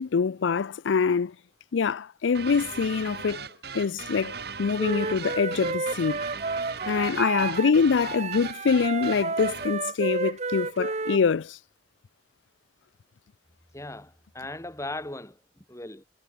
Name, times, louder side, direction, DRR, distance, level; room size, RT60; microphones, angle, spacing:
voice 1, 0.0-1.3 1.7-3.5 3.7-4.3 4.6-6.2 6.9-11.6, left 5 dB, 90° left, 0.5 m, -25 dB
sound 1, 2.3-9.8, right 5 dB, 60° right, 7.0 m, -39 dB
Wind instrument woodwind instrument, 4.8-7.7 8.0-11.2, right 3 dB, 40° right, 1.1 m, -31 dB
voice 2, 13.7-16.0, left 2 dB, 15° left, 2.9 m, -38 dB
head